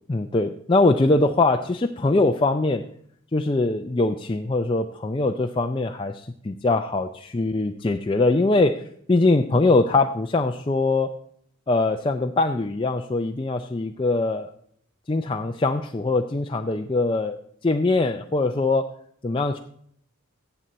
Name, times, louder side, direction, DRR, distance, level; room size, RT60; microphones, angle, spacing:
voice 1, 0.1-2.8 3.3-7.1 7.3-8.8 9.1-11.1 11.7-14.5 15.1-17.4 17.6-18.9 19.2-19.6, left 2 dB, 25° left, 5 dB, 0.4 m, -22 dB
15.0 x 8.0 x 4.1 m, 0.65 s
head